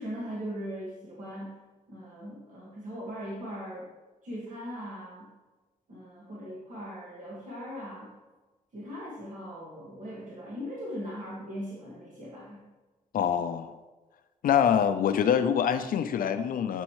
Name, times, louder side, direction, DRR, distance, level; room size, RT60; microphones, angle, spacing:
voice 1, 0.0-1.6 1.9-3.9 4.2-5.3 5.9-8.2 8.7-12.7, equal, 60° right, -5 dB, 1.7 m, -39 dB
voice 2, 13.1-13.8 14.4-16.8, left 8 dB, 75° left, 9 dB, 0.5 m, -25 dB
6.3 x 6.1 x 3.1 m, 1.2 s
cardioid pair, 80°, 15 cm